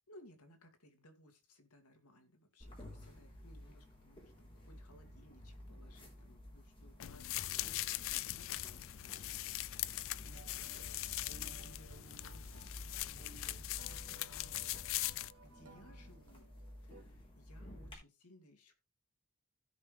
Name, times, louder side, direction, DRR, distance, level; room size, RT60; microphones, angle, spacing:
voice 1, 0.1-9.5 9.9-12.6 12.9-13.9 14.3-16.5 16.8-18.7, left 1 dB, 80° left, 2.6 m, -63 dB
sound 1, 2.6-17.9, left 1 dB, 25° left, 4.0 m, -54 dB
sound 2, 7.0-15.3, left 15 dB, 65° left, 0.4 m, -41 dB
sound 3, 10.2-17.0, right 3 dB, 75° right, 1.4 m, -60 dB
16.0 x 5.6 x 3.4 m
head